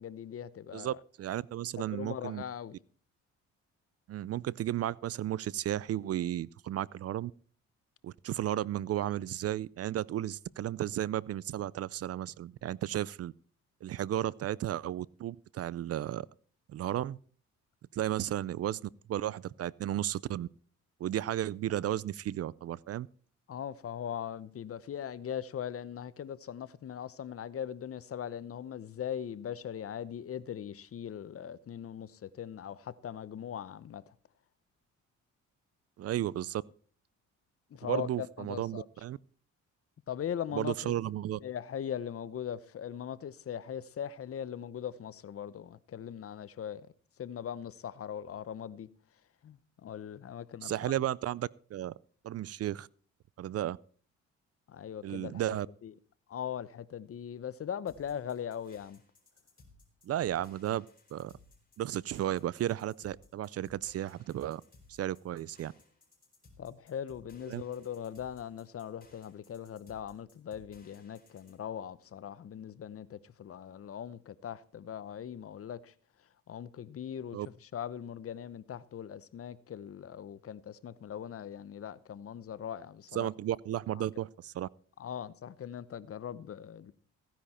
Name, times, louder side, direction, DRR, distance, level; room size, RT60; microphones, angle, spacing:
voice 1, 0.0-1.0 1.8-2.8 23.5-34.1 37.7-38.9 40.1-40.9 41.4-46.9 47.2-48.9 49.4-50.9 54.7-55.6 55.8-55.9 56.3-59.0 66.6-75.9 76.5-83.3 83.9-84.1 85.0-86.9, left 9 dB, 50° left, 0.9 m, -40 dB
voice 2, 0.7-2.4 4.1-7.3 8.0-13.3 13.8-16.3 16.7-17.2 17.9-20.5 21.0-23.1 36.0-36.6 37.9-39.2 40.5-41.4 50.6-51.9 52.2-52.9 53.4-53.8 55.0-55.7 60.0-60.8 61.1-61.3 61.8-64.6 64.9-65.7 67.5-67.6 77.3-77.5 83.1-84.7, right 12 dB, 55° right, 0.5 m, -34 dB
sound 1, 57.9-71.6, left 3 dB, 30° left, 5.1 m, -61 dB
15.5 x 10.0 x 4.3 m
cardioid pair, 90°, 30 cm